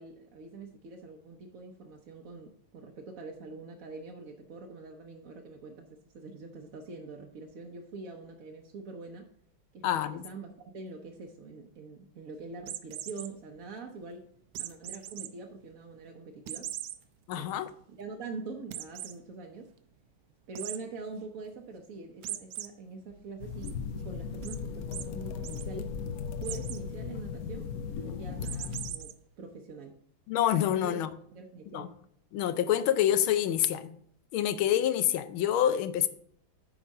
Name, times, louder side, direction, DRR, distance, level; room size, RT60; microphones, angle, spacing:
voice 1, 0.0-9.3 9.7-14.3 14.6-16.7 17.3-17.5 17.9-19.7 20.5-23.8 24.0-25.9 26.4-27.7 28.0-29.9 30.8-31.0 31.3-31.9, right 3 dB, 55° right, 1.0 m, -44 dB
voice 2, 9.8-10.2 17.3-17.7 30.3-31.1 31.7-31.9 32.3-34.0 34.3-36.1, left 11 dB, 90° left, 1.5 m, -27 dB
sound 1, 12.6-13.3 14.5-15.3 15.7-15.8 16.5-17.0 17.4-17.5 17.8-17.9 18.7-19.1 20.5-20.8 22.2-22.7 23.1-23.7 24.4-24.6 24.9-25.0 25.3-25.6 26.4-26.8 28.4-29.1, right 12 dB, 80° right, 1.4 m, -39 dB
sound 2, 23.4-29.0, left 6 dB, 65° left, 0.9 m, -37 dB
10.0 x 4.1 x 6.3 m
omnidirectional pair, 2.2 m